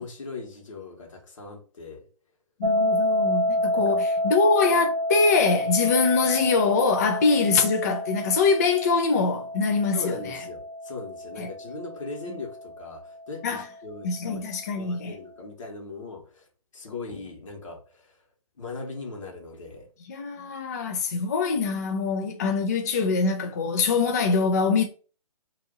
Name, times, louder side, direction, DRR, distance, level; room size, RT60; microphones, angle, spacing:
voice 1, 0.0-2.0 3.7-4.0 9.9-16.4 16.7-18.2 18.6-19.9, left 3 dB, 60° left, 1.4 m, -39 dB
voice 2, 2.6-10.4 11.4-11.5 13.4-13.6 14.0-15.2 20.1-24.8, left 4 dB, 25° left, 0.3 m, -23 dB
sound 1, 2.6-13.5, left 1 dB, 70° right, 0.6 m, -29 dB
2.8 x 2.5 x 3.8 m
figure-of-eight pair, 145°, 19 cm